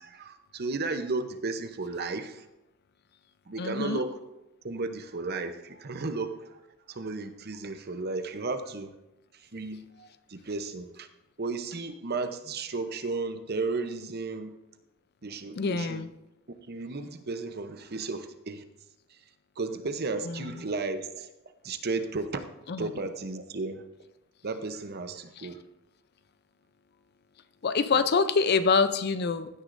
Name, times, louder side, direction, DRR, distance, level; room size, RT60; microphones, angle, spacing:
voice 1, 0.0-2.5 3.5-4.2 4.6-6.6 6.9-8.9 9.3-11.1 11.4-14.6 15.2-16.1 16.5-18.6 19.1-19.2 19.6-21.3 21.6-22.4 22.8-23.8 24.4-25.6 27.9-28.0, right 3 dB, 50° right, 9 dB, 0.8 m, -34 dB
voice 2, 3.6-4.0 15.6-16.1 20.3-20.5 22.7-22.9 27.6-29.5, left 4 dB, 50° left, 12 dB, 0.5 m, -25 dB
15.5 x 9.5 x 2.6 m, 0.90 s
head